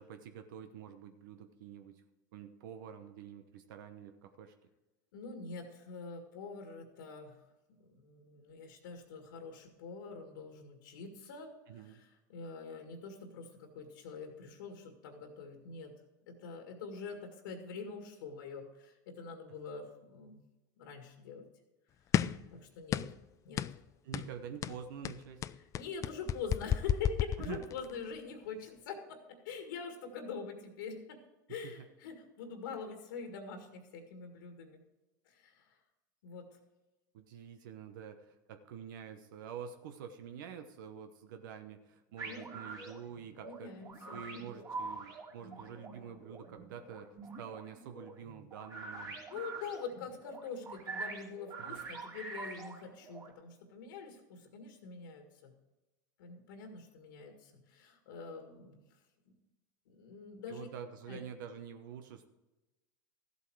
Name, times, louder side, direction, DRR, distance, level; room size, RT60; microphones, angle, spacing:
voice 1, 0.0-2.0 2.3-4.5 11.7-12.0 24.0-25.5 27.4-27.6 31.6-31.7 37.1-43.7 44.1-47.1 47.4-49.2 51.6-51.8 60.5-62.3, right 8 dB, 75° right, 7 dB, 1.0 m, -47 dB
voice 2, 5.1-7.4 7.8-11.5 11.7-15.9 16.3-20.4 20.8-21.5 22.5-23.1 23.4-23.6 25.6-29.2 29.4-31.2 31.5-34.8 35.3-35.8 36.2-36.5 42.2-42.5 43.5-44.4 49.3-55.5 56.2-58.8 59.3-59.4 59.9-60.7 61.1-61.2, left 5 dB, 80° left, 4 dB, 1.9 m, -45 dB
sound 1, 22.1-22.5 22.9-23.2 23.6-23.8 24.1-24.3 24.6-28.0, left 10 dB, 30° left, 0.4 m, -32 dB
sound 2, 42.2-53.3, right 3 dB, 35° right, 3.0 m, -45 dB
14.0 x 8.1 x 4.7 m, 1.1 s
supercardioid pair, 115°, 11 cm